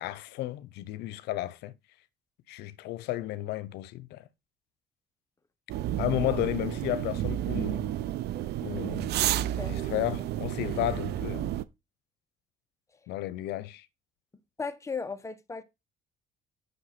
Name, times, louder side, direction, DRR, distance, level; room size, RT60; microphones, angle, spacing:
voice 1, 0.0-1.7 2.5-4.3 6.0-7.9 8.6-9.1 9.6-11.5 13.1-13.9, left 15 dB, 85° left, 0.8 m, -33 dB
sound 1, 5.7-11.6, right 12 dB, 75° right, 0.8 m, -31 dB
voice 2, 9.3-9.7 14.6-15.6, left 5 dB, 15° left, 1.2 m, -36 dB
8.1 x 6.3 x 5.8 m
cardioid pair, 110°, 17 cm